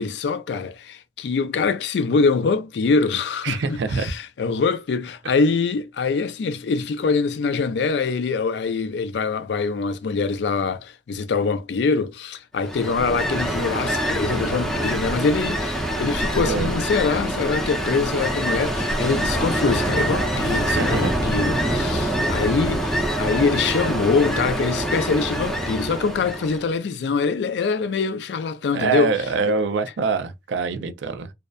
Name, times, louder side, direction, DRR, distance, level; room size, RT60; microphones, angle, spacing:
voice 1, 0.0-29.1 29.5-29.6, left 4 dB, 70° left, 0.4 m, -24 dB
voice 2, 3.4-4.1 5.2-5.3 16.4-16.7 20.7-21.1 22.0-22.1 28.7-31.3, right 4 dB, 85° right, 0.4 m, -25 dB
Ocean, 12.6-26.7, right 1 dB, 5° left, 0.6 m, -25 dB
2.6 x 2.1 x 2.3 m
head